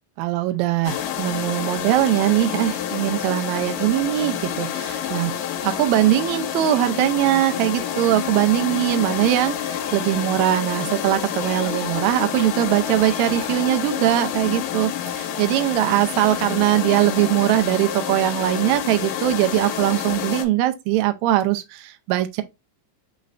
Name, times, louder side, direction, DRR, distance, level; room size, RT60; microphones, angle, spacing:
voice 1, 0.2-5.3 5.6-22.4, right 14 dB, 80° right, 1.7 m, -21 dB
sound 1, 0.8-20.4, left 9 dB, 85° left, 2.3 m, -28 dB
sound 2, 9.7-10.8 11.3-12.4 13.0-14.2, left 4 dB, 15° left, 1.4 m, -41 dB
5.1 x 3.3 x 2.4 m
omnidirectional pair, 3.8 m